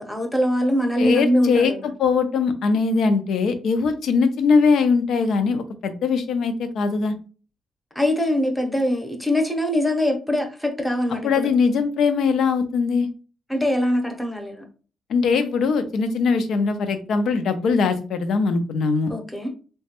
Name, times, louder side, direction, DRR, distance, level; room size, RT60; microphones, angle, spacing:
voice 1, 0.0-1.9 7.9-11.5 13.5-14.6 19.1-19.5, left 1 dB, 5° left, 0.7 m, -22 dB
voice 2, 1.0-1.7 2.0-7.1 11.1-13.1 15.1-19.1, left 5 dB, 70° left, 0.5 m, -21 dB
3.0 x 2.2 x 2.9 m
cardioid pair, 90°, 0 cm